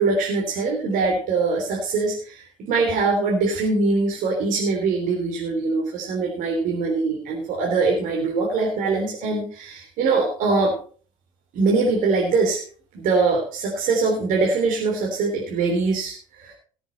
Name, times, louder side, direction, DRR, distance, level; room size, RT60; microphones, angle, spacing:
voice 1, 0.0-10.7 11.5-12.6 12.9-16.5, right 3 dB, 55° right, -1 dB, 3.5 m, -22 dB
18.0 x 7.3 x 4.3 m, 0.42 s
figure-of-eight pair, 65°, 17 cm